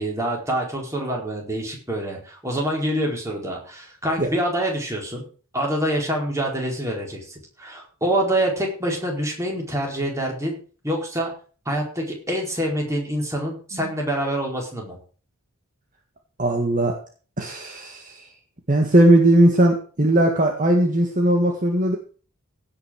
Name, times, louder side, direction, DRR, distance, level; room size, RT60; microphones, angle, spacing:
voice 1, 0.0-5.2 5.5-10.6 10.8-11.3 11.6-15.0, right 1 dB, 15° right, 0 dB, 4.5 m, -26 dB
voice 2, 16.4-17.0 17.4-18.3 18.7-22.0, right 1 dB, 35° right, 2 dB, 1.9 m, -18 dB
17.0 x 6.3 x 6.4 m, 0.40 s
head